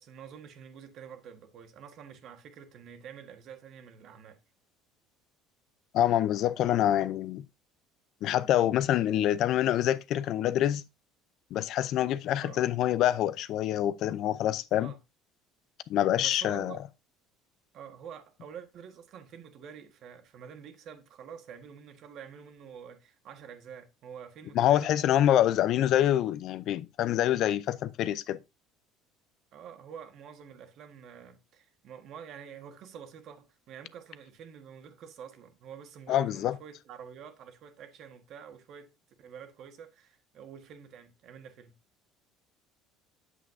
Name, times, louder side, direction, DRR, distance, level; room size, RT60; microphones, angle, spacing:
voice 1, 0.0-4.4 9.1-9.4 12.4-12.6 14.8-15.0 16.1-16.8 17.7-25.2 29.5-38.9 39.2-41.7, right 7 dB, 55° right, 1.5 m, -47 dB
voice 2, 5.9-7.4 8.2-10.8 11.5-14.9 15.9-16.8 24.5-28.4 36.1-36.6, left 12 dB, 60° left, 0.5 m, -26 dB
8.2 x 7.4 x 2.7 m
supercardioid pair, 105°, 0 cm